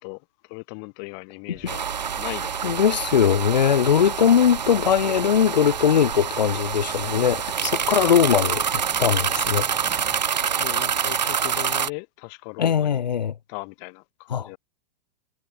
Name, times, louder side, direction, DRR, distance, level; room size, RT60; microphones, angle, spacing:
voice 1, 0.0-1.9 2.2-2.8 10.6-13.0 13.5-14.6, left 40 dB or more, 50° left, 3.9 m, -38 dB
sound 1, 1.5-10.2, right 5 dB, 15° right, 6.3 m, -48 dB
sound 2, 1.7-11.9, right 7 dB, 85° right, 4.1 m, -26 dB
voice 2, 2.6-9.7 12.6-13.3 14.3-14.5, left 8 dB, 80° left, 2.4 m, -20 dB
hypercardioid pair, 110°, 21 cm